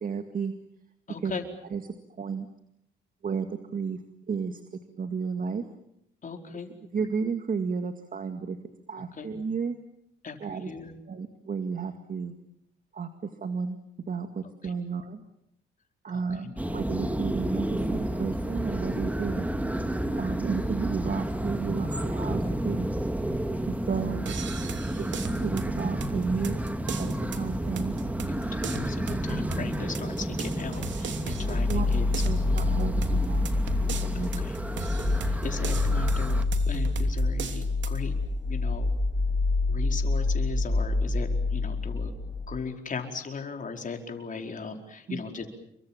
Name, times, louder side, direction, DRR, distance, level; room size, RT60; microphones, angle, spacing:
voice 1, 0.0-0.5 1.2-1.3 1.7-1.8 2.2-2.5 3.2-4.0 4.3-4.6 4.9-5.6 6.9-8.6 8.9-9.8 10.4-10.7 11.1-12.3 12.9-13.8 14.1-15.2 16.0-19.5 20.1-22.9 23.7-24.3 25.0-26.6 27.0-28.0 31.7-31.9 32.2-33.5 34.0-34.4 45.1-45.2, right 5 dB, 45° right, 7 dB, 2.1 m, -32 dB
voice 2, 1.1-1.5 6.2-6.8 9.1-9.4 10.2-10.9 14.6-14.7 16.1-16.5 28.3-32.6 34.1-34.5 35.2-38.2 38.4-38.9 39.7-42.1 42.5-45.5, left 5 dB, 40° left, 4 dB, 4.8 m, -38 dB
sound 1, 16.6-36.4, right 1 dB, 5° right, 2.1 m, -31 dB
sound 2, 24.3-38.0, right 6 dB, 70° right, 3.0 m, -38 dB
sound 3, 31.3-42.5, left 3 dB, 15° left, 5.9 m, -27 dB
29.0 x 24.0 x 7.4 m, 0.78 s
cardioid pair, 90°, 20 cm